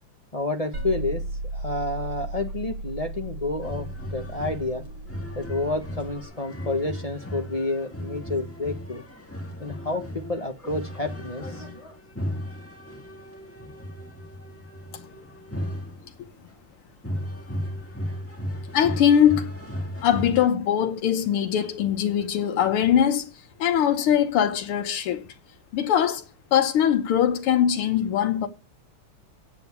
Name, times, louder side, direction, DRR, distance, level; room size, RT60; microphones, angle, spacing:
voice 1, 0.3-1.2 1.5-9.0 9.6-12.0, left 2 dB, 25° left, 0.8 m, -30 dB
sound 1, 0.7-6.3, right 2 dB, 80° right, 3.6 m, -35 dB
sound 2, 3.6-16.5 17.0-20.5, equal, 5° left, 1.5 m, -36 dB
voice 2, 18.7-19.6 20.0-23.3 23.6-25.2 25.7-26.3 26.5-28.5, left 9 dB, 90° left, 1.9 m, -21 dB
9.1 x 7.0 x 7.0 m
omnidirectional pair, 2.3 m